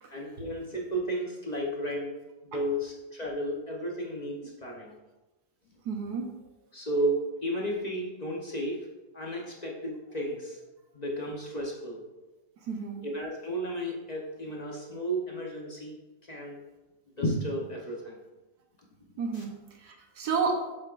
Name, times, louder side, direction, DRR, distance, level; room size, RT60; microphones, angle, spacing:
voice 1, 0.1-2.1 2.4-5.0 6.7-8.8 9.1-10.6 10.9-12.0 13.0-16.0 16.2-16.6 17.2-18.2 19.3-19.4, right 1 dB, 35° left, -2 dB, 0.8 m, -33 dB
voice 2, 5.8-6.3 12.7-13.0 19.2-19.5 19.8-20.6, right 5 dB, 65° right, 2 dB, 1.4 m, -31 dB
7.6 x 7.6 x 2.5 m, 1.1 s
omnidirectional pair, 1.8 m